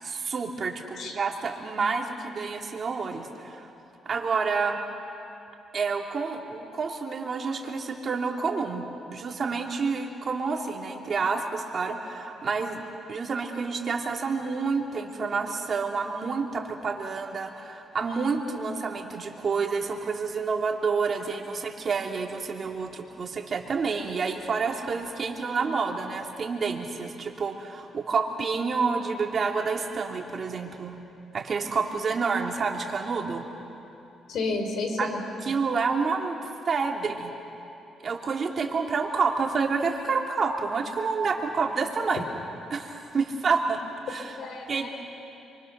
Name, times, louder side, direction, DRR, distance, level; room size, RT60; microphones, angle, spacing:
voice 1, 0.0-3.7 4.0-4.8 5.7-12.8 13.1-30.9 31.3-33.4 35.0-35.1 35.4-36.4 36.7-37.3 38.0-42.2 42.7-43.8 44.1-44.4 44.7-44.9, right 4 dB, 45° right, 2 dB, 2.7 m, -29 dB
voice 2, 34.3-35.2 42.2-42.3 44.4-44.9, left 3 dB, 70° left, 4 dB, 4.1 m, -31 dB
28.5 x 24.0 x 6.7 m, 2.8 s
cardioid pair, 90°, 0 cm